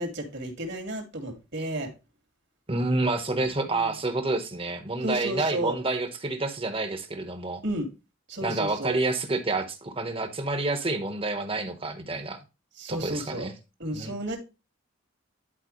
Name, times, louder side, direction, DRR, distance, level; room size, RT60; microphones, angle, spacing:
voice 1, 0.0-1.9 3.4-3.9 5.0-5.8 7.6-7.9 8.3-8.9 12.8-13.5 13.8-14.4, right 1 dB, 60° right, 2.5 m, -33 dB
voice 2, 2.7-7.6 8.4-12.4 12.9-13.5 13.9-14.1, right 2 dB, 30° right, 1.3 m, -28 dB
11.0 x 4.8 x 3.2 m
head